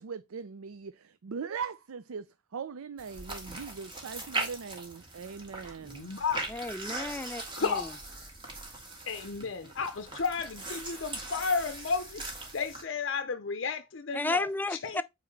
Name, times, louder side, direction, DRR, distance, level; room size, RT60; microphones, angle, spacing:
voice 1, 0.0-6.1, right 6 dB, 85° right, 0.5 m, -40 dB
sound 1, 3.0-12.8, right 2 dB, 20° right, 1.7 m, -40 dB
voice 2, 5.8-6.5 7.6-8.0 9.1-12.3 12.5-15.0, left 5 dB, 60° left, 0.6 m, -33 dB
voice 3, 6.5-7.9 14.1-15.0, left 2 dB, 10° left, 0.3 m, -33 dB
8.7 x 3.1 x 4.5 m
head